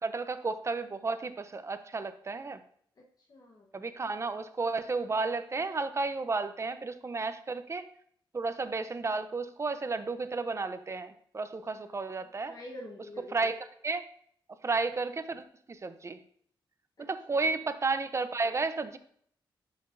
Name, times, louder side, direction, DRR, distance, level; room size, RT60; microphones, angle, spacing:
voice 1, 0.0-2.6 3.7-7.9 8.3-12.5 13.3-13.6 13.8-14.0 14.6-16.2 17.0-19.0, right 3 dB, 35° right, 11 dB, 0.6 m, -32 dB
voice 2, 3.3-3.7 11.8-12.1 12.5-13.5 17.0-17.4, left 1 dB, 50° left, -1 dB, 1.1 m, -47 dB
11.0 x 5.9 x 2.6 m, 0.63 s
cardioid pair, 85°, 9 cm